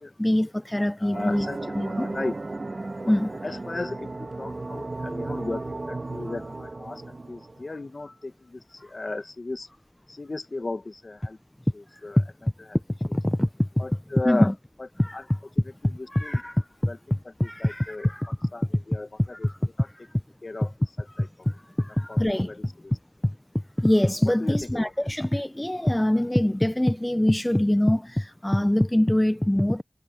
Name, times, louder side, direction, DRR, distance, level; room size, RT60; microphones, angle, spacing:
voice 1, 0.2-1.5 1.7-2.1 3.1-3.3 13.1-13.5 14.2-14.5 15.0-15.2 16.1-16.5 17.4-18.3 22.0-22.5 23.8-29.8, left 1 dB, 15° left, 0.3 m, -23 dB
voice 2, 1.0-2.4 3.4-5.6 5.9-7.0 7.3-9.7 10.1-11.4 11.7-12.2 13.8-14.5 15.1-15.2 15.8-16.4 16.9-17.0 17.4-18.1 18.5-19.5 19.8-19.9 20.4-20.7 21.0-21.3 22.1-22.9 24.2-24.9, left 2 dB, 70° left, 1.1 m, -35 dB
sound 1, 1.1-7.9, right 2 dB, 65° right, 1.2 m, -34 dB
wide cardioid pair, 50°, 0 cm